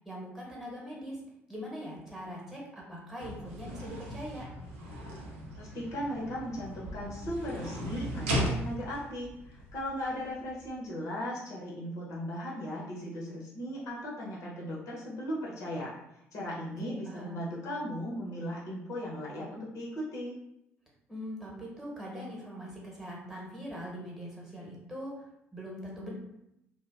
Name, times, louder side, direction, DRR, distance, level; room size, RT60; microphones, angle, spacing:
voice 1, 0.0-1.2 1.5-4.5 16.8-17.5 21.1-26.1, equal, 5° right, -3 dB, 1.0 m, -42 dB
sound 1, 3.2-10.7, equal, 75° right, 0.4 m, -37 dB
voice 2, 5.6-15.9 16.3-20.4, equal, 50° left, -5 dB, 0.6 m, -37 dB
2.5 x 2.0 x 2.4 m, 0.82 s
figure-of-eight pair, 45°, 7 cm